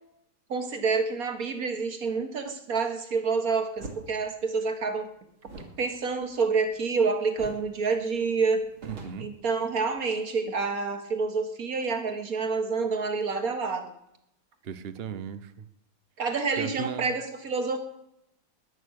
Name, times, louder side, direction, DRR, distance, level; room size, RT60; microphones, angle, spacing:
voice 1, 0.5-5.1 5.8-8.6 9.2-13.9 16.2-17.8, right 4 dB, 40° right, 7 dB, 1.9 m, -28 dB
sound 1, 3.8-4.0 5.4-7.0 7.4-7.7 8.0-8.1 8.5-10.0, right 3 dB, 65° right, 3.5 m, -44 dB
voice 2, 8.8-9.3 14.6-15.7 16.6-17.1, right 7 dB, 85° right, 12 dB, 0.5 m, -36 dB
20.5 x 8.9 x 6.5 m, 0.79 s
omnidirectional pair, 2.4 m